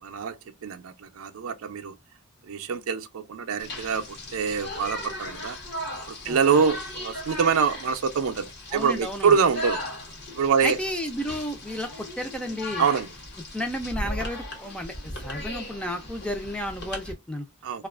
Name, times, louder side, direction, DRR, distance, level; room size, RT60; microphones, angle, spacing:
voice 1, 0.0-2.0 2.4-5.6 6.1-9.8 10.3-10.8 12.8-13.1 17.6-17.8, right 6 dB, 70° right, 0.4 m, -25 dB
sound 1, 3.6-17.1, left 1 dB, 50° left, 0.9 m, -37 dB
voice 2, 6.2-6.6 8.7-9.4 10.6-12.9 13.5-17.5, equal, 5° left, 0.4 m, -32 dB
2.4 x 2.3 x 2.3 m
head